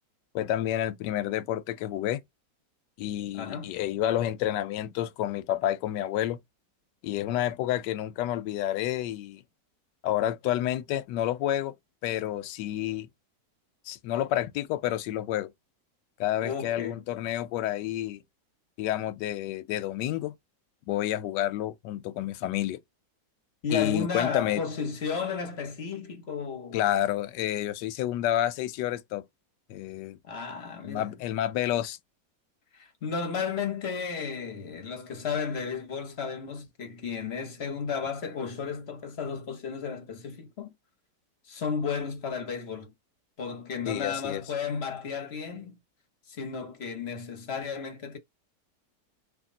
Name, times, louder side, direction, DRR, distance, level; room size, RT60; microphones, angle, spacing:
voice 1, 0.3-2.2 3.0-6.4 7.0-9.4 10.0-11.7 12.0-13.1 13.9-15.5 16.2-18.2 18.8-20.3 20.9-22.8 23.7-24.6 26.7-29.2 29.7-30.2 30.8-32.0 43.9-44.4, left 12 dB, 80° left, 1.2 m, -29 dB
voice 2, 3.3-3.7 16.4-17.0 23.6-26.8 30.2-31.1 32.7-40.7 41.4-42.9 43.4-45.8 46.3-48.2, left 5 dB, 45° left, 0.9 m, -33 dB
3.5 x 2.6 x 3.7 m
omnidirectional pair, 1.9 m